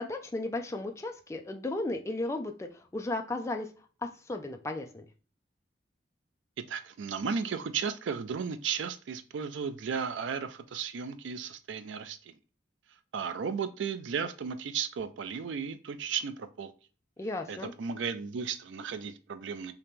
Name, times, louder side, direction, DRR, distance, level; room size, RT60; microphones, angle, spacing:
voice 1, 0.0-3.7 4.0-5.1 17.2-17.7, left 2 dB, 15° left, 4 dB, 0.3 m, -35 dB
voice 2, 6.7-12.4 13.1-16.7 17.5-19.7, right 6 dB, 80° right, 11 dB, 0.4 m, -35 dB
2.9 x 2.8 x 3.5 m, 0.37 s
head